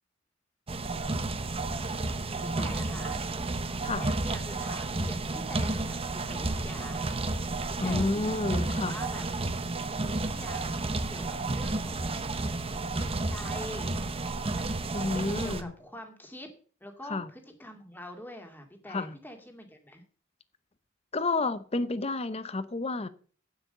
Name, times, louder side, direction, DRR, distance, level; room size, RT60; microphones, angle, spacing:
sound 1, 0.7-15.6, right 2 dB, 30° right, 0.9 m, -32 dB
voice 1, 2.4-3.3 4.0-9.2 10.0-12.6 13.0-14.0 14.5-14.7 15.1-16.5 16.8-20.0, left 1 dB, 10° left, 2.3 m, -45 dB
voice 2, 7.8-9.0 14.9-15.7 17.1-17.3 18.9-19.2 21.1-23.1, left 3 dB, 30° left, 0.8 m, -30 dB
8.9 x 8.0 x 6.6 m
head